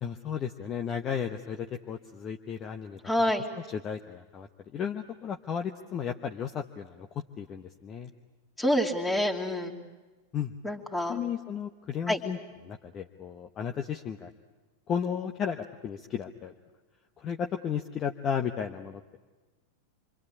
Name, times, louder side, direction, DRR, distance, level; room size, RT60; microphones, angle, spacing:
voice 1, 0.0-3.0 3.7-7.1 7.4-8.1 10.3-10.5 11.1-12.4 12.6-14.3 14.9-16.5 17.2-19.2, left 7 dB, 30° left, 5 dB, 1.1 m, -34 dB
voice 2, 3.0-3.5 8.6-9.7 10.6-11.2 12.1-12.2, left 1 dB, 10° left, 1 dB, 2.9 m, -27 dB
27.5 x 25.0 x 8.6 m, 1.2 s
figure-of-eight pair, 90°, 0 cm